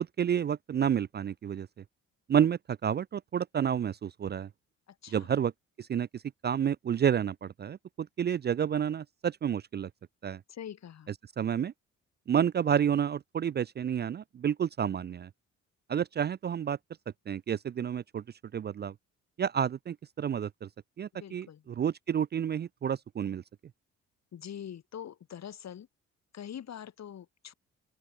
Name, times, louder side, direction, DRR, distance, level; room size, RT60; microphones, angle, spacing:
voice 1, 0.2-1.7 2.3-4.5 5.1-5.5 5.8-9.9 10.2-10.4 11.4-11.7 12.3-15.3 15.9-16.8 17.3-18.2 18.5-18.9 19.4-20.7 21.0-23.4, right 8 dB, 35° right, 0.4 m, -30 dB
voice 2, 4.9-5.3 10.5-11.1 21.1-21.7 24.3-25.9 26.3-27.5, left 9 dB, 60° left, 6.2 m, -44 dB
open air
cardioid pair, 90°, 30 cm